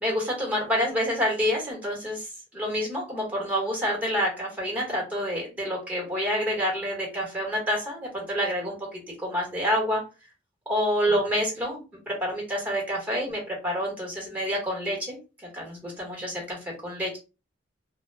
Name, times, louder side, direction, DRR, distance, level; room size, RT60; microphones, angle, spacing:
voice 1, 0.0-2.2 2.5-8.8 9.2-10.0 10.7-15.2 15.5-16.6 16.8-17.2, equal, 10° right, -1 dB, 1.1 m, -28 dB
2.2 x 2.1 x 3.1 m, 0.30 s
head